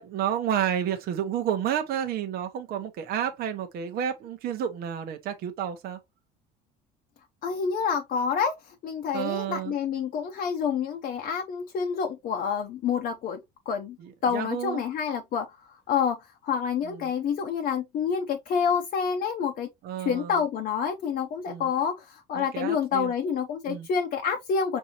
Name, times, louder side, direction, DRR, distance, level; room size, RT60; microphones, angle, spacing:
voice 1, 0.0-6.0 9.1-9.7 14.0-14.8 16.8-17.1 19.8-20.4 21.5-21.7 22.3-23.1 23.6-23.9, right 9 dB, 55° right, 0.9 m, -30 dB
voice 2, 7.4-13.4 13.7-14.0 14.2-15.5 15.9-16.2 16.4-19.7 20.0-24.8, left 6 dB, 45° left, 0.7 m, -28 dB
5.4 x 2.8 x 2.8 m
cardioid pair, 135°, 19 cm